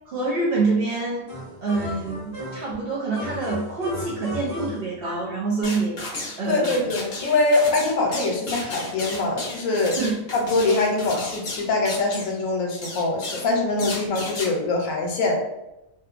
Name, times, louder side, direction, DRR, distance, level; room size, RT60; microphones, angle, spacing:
voice 1, 0.1-1.3 1.6-6.9 10.0-10.1, right 3 dB, 65° right, -5 dB, 0.6 m, -26 dB
sound 1, 1.3-2.8 3.1-5.4, left 1 dB, 35° right, 1.2 m, -35 dB
sound 2, 5.6-6.4 6.6-12.4 12.8-13.5 13.8-14.5, left 2 dB, 50° left, 0.6 m, -33 dB
voice 2, 6.5-10.0 10.3-15.4, left 2 dB, 80° left, 1 dB, 1.0 m, -23 dB
2.8 x 2.1 x 2.4 m, 0.92 s
omnidirectional pair, 1.4 m